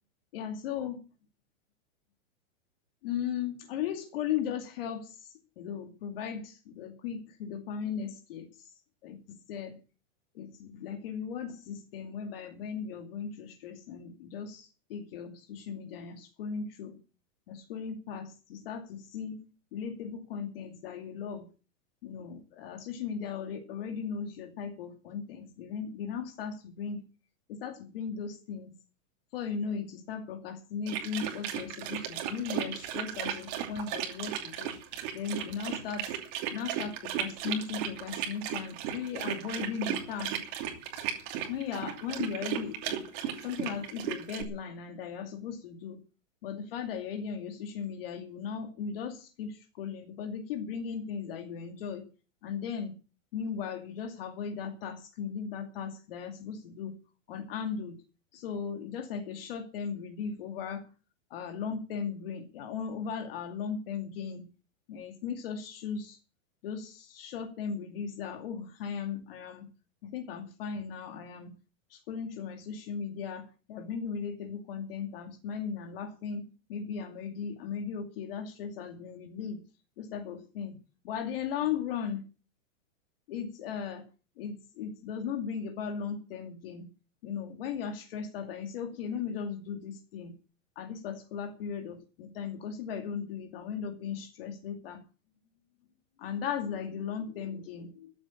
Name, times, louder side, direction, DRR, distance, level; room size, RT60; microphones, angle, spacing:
voice 1, 0.3-1.0 3.0-5.3 5.6-8.5 9.0-9.8 10.3-17.0 17.5-19.4 19.7-21.5 22.0-27.0 27.5-28.7 29.3-34.8 35.1-36.1 36.5-40.4 41.5-43.1 43.4-46.0 46.4-52.1 52.4-52.9 53.3-57.0 57.3-58.0 58.3-60.9 61.3-64.5 64.9-66.2 66.6-69.7 70.0-71.5 71.9-76.4 76.7-79.6 80.0-80.8 81.0-82.2 83.3-84.1 84.4-86.9 87.2-90.3 90.8-95.0 96.2-98.1, left 7 dB, 45° left, 6 dB, 2.5 m, -37 dB
sound 1, 30.9-44.4, right 10 dB, 35° right, 2.8 m, -35 dB
14.0 x 8.2 x 8.5 m, 0.35 s
supercardioid pair, 170°, 40 cm